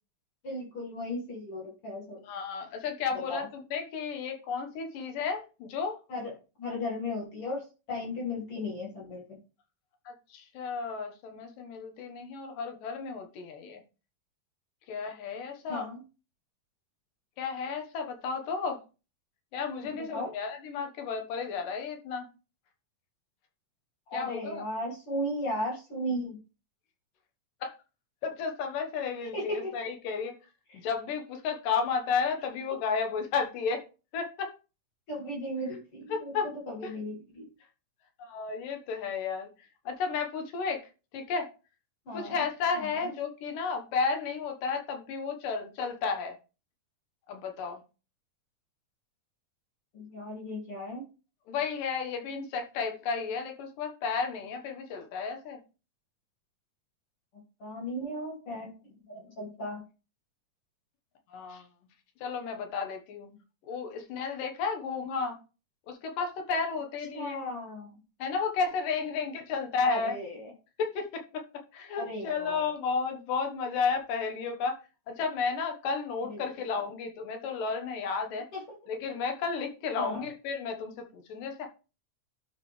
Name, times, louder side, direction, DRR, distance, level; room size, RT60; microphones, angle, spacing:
voice 1, 0.4-2.2 3.3-3.5 6.1-6.3 6.6-9.4 15.7-16.0 19.8-20.3 24.1-26.4 29.3-29.7 30.7-30.8 35.1-37.5 42.1-42.4 42.8-43.1 49.9-51.0 57.3-58.7 59.1-59.8 67.1-68.0 69.8-70.5 72.0-72.7 76.3-76.4 78.5-78.6 80.0-80.2, left 1 dB, 45° left, 2.6 m, -36 dB
voice 2, 2.2-6.0 10.1-13.8 14.9-15.9 17.4-18.8 19.5-22.3 24.1-24.6 27.6-27.7 28.2-30.4 30.7-33.9 34.1-34.5 36.1-36.5 36.8-36.9 38.2-39.5 39.9-40.8 41.1-41.5 42.1-46.3 47.3-47.8 51.5-55.6 61.3-61.7 62.2-63.3 63.7-65.4 65.9-67.4 68.2-70.2 70.8-71.4 71.7-74.8 75.1-78.5 78.9-81.7, left 5 dB, 80° left, 2.9 m, -32 dB
12.5 x 4.8 x 3.2 m
omnidirectional pair, 3.8 m